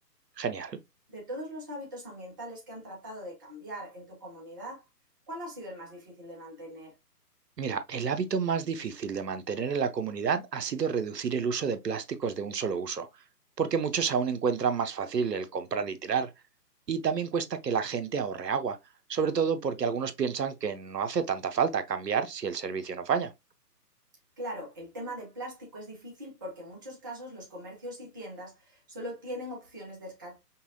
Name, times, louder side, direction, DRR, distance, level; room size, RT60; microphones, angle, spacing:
voice 1, 0.4-0.8 7.6-13.1 13.6-16.3 16.9-18.8 19.1-23.3, right 6 dB, 80° right, 0.8 m, -29 dB
voice 2, 1.1-4.8 5.3-6.9 24.4-30.4, equal, 15° right, 0.6 m, -41 dB
5.4 x 2.3 x 2.5 m
figure-of-eight pair, 140°, 48 cm